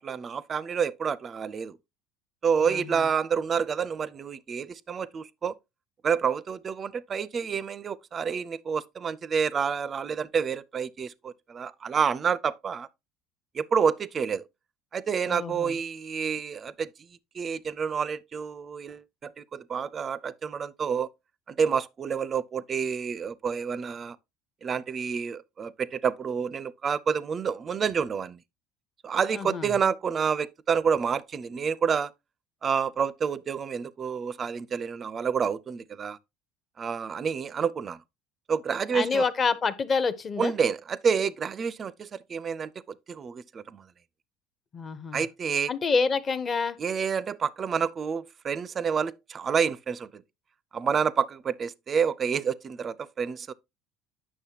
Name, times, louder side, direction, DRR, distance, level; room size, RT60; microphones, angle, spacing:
voice 1, 0.0-1.8 2.4-5.6 6.0-12.9 13.5-14.5 14.9-16.9 17.3-21.1 21.5-24.2 24.6-28.4 29.0-32.1 32.6-36.2 36.8-38.0 38.5-39.3 40.4-43.9 45.1-45.7 46.8-50.2 50.7-53.5, right 6 dB, 25° right, 0.4 m, -28 dB
voice 2, 2.6-3.0 15.3-15.7 29.3-29.7 38.9-40.5 44.7-45.2 45.7-46.8, left 5 dB, 25° left, 0.6 m, -27 dB
9.1 x 6.3 x 2.8 m
cardioid pair, 150°, 0 cm